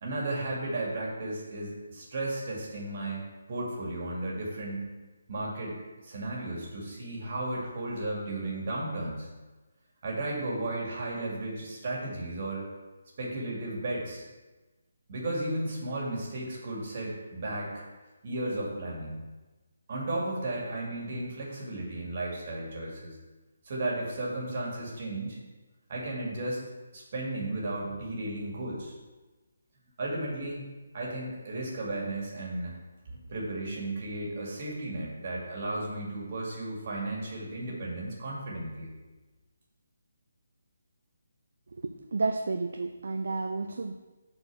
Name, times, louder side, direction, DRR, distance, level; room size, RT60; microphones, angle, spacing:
voice 1, 0.0-4.9 5.3-5.8 6.0-9.3 10.0-12.6 13.2-14.2 15.1-17.9 18.2-19.2 19.9-23.2 23.6-25.4 25.9-26.6 26.9-28.9 30.0-30.6 30.9-32.8 33.1-38.9, right 2 dB, 40° right, -3 dB, 2.3 m, -34 dB
voice 2, 41.8-43.9, right 3 dB, 60° right, 6 dB, 0.4 m, -31 dB
6.5 x 4.5 x 6.2 m, 1.2 s
figure-of-eight pair, 145°, 0 cm